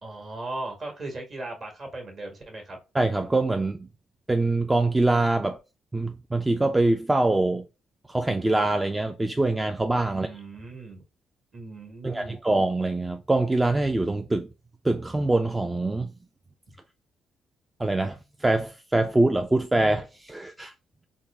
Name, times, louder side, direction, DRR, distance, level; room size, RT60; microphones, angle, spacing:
voice 1, 0.0-2.8 10.1-11.0 11.5-12.4, right 2 dB, 45° right, 1.4 m, -38 dB
voice 2, 2.9-3.9 4.3-5.6 5.9-7.7 8.1-10.3 12.0-14.5 14.8-16.1 17.8-20.7, right 2 dB, 15° right, 0.3 m, -24 dB
3.9 x 2.1 x 3.4 m
cardioid pair, 90°, 0 cm